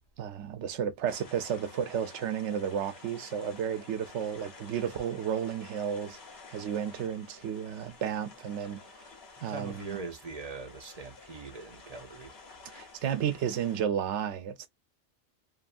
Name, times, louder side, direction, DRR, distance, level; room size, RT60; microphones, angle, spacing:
voice 1, 0.2-6.2 6.5-8.8 9.4-10.0 12.7-14.7, right 8 dB, 85° right, 0.9 m, -32 dB
sound 1, 1.1-13.8, left 4 dB, 65° left, 1.2 m, -51 dB
voice 2, 9.5-12.4, right 4 dB, 40° right, 0.7 m, -41 dB
2.7 x 2.5 x 2.4 m
omnidirectional pair, 1.2 m